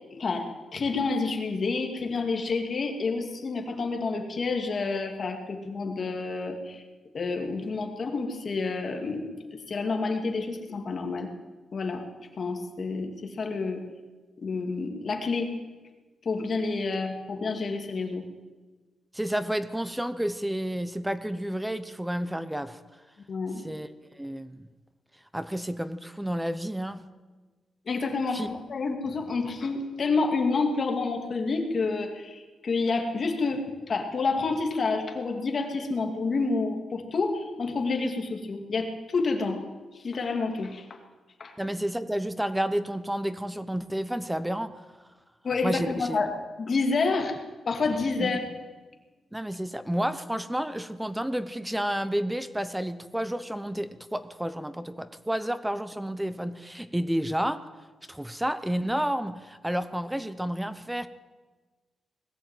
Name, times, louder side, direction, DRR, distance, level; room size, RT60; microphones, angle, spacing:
voice 1, 0.1-6.8 7.1-11.3 11.7-12.0 12.4-13.8 14.4-15.5 16.2-18.2 23.3-23.6 27.9-39.6 39.9-41.0 41.4-41.5 45.4-46.3 46.6-47.4 47.7-48.4, left 4 dB, 40° left, 3 dB, 2.7 m, -29 dB
voice 2, 19.1-22.8 23.6-23.9 24.2-24.7 25.3-27.0 28.3-28.5 41.6-44.8 45.6-46.2 48.2-48.3 49.3-57.6 58.1-61.1, right 1 dB, 5° right, 12 dB, 0.7 m, -30 dB
20.0 x 16.0 x 9.2 m, 1.3 s
wide cardioid pair, 170°, 0 cm